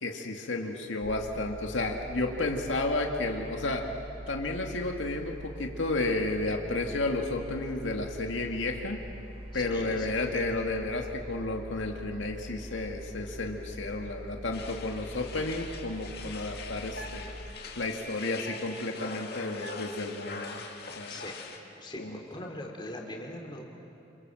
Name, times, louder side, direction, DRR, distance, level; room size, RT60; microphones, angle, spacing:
voice 1, 0.0-3.8 4.3-9.0 9.5-17.3 17.8-20.6 21.0-21.1 22.0-22.2, left 2 dB, 80° left, 2 dB, 2.1 m, -32 dB
sound 1, 1.0-17.6, equal, 30° right, 1.8 m, -44 dB
voice 2, 9.5-10.1 21.1-21.3 21.8-23.6, left 1 dB, 25° left, 0 dB, 3.1 m, -41 dB
sound 2, 14.5-21.6, left 4 dB, 55° left, 2.3 m, -43 dB
28.0 x 27.5 x 7.7 m, 2.8 s
head